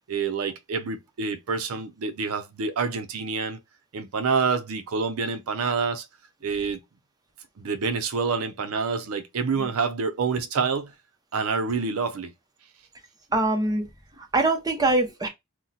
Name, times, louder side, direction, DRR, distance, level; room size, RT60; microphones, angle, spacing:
voice 1, 0.1-3.6 3.9-6.1 6.4-6.8 7.6-10.9 11.3-12.3, right 5 dB, 80° right, 0.5 m, -27 dB
voice 2, 13.3-13.9 14.2-15.3, right 2 dB, 15° right, 0.7 m, -23 dB
2.7 x 2.1 x 3.8 m
head